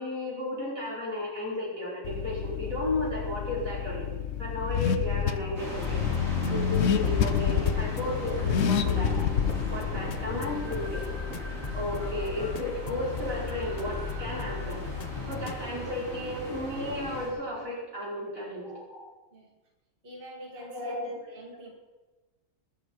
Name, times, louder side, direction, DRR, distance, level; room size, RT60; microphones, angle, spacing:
voice 1, 0.0-4.1 4.4-6.0 6.5-9.3 9.7-11.0 11.7-14.9 15.3-19.1 20.5-21.2, left 1 dB, 90° right, -5 dB, 5.9 m, -34 dB
Car / Accelerating revving vroom, 2.0-11.2, left 8 dB, 70° left, 1.1 m, -29 dB
sound 1, 5.6-17.3, right 1 dB, 70° right, 5.0 m, -38 dB
sound 2, 5.8-15.6, left 7 dB, 45° left, 0.5 m, -37 dB
voice 2, 20.0-21.8, equal, 40° right, 0 dB, 2.2 m, -46 dB
21.0 x 11.5 x 4.7 m, 1.2 s
omnidirectional pair, 1.4 m